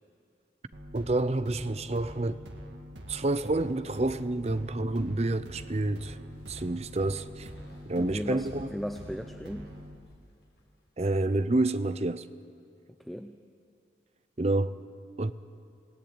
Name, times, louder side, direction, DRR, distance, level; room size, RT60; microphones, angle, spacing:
sound 1, 0.7-10.0, equal, 85° right, 2.1 m, -45 dB
voice 1, 0.9-2.4 3.1-6.2 6.5-7.5 7.9-8.7 11.0-12.3 14.4-14.7 15.2-15.3, right 2 dB, 35° right, 0.7 m, -28 dB
sound 2, 6.3-11.4, equal, 65° left, 7.2 m, -61 dB
voice 2, 8.0-9.7 13.0-13.4, equal, ahead, 0.6 m, -37 dB
27.0 x 18.0 x 8.9 m
head